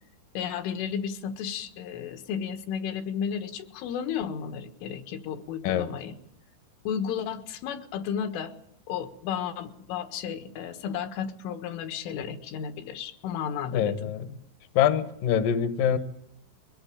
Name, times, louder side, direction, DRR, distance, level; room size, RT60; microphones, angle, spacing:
voice 1, 0.4-6.1 6.9-8.5 8.9-14.1, left 8 dB, 80° left, 8 dB, 4.1 m, -33 dB
voice 2, 13.7-14.3 14.8-16.0, left 9 dB, 65° left, 11 dB, 2.3 m, -24 dB
23.0 x 18.0 x 8.6 m, 0.74 s
omnidirectional pair, 5.6 m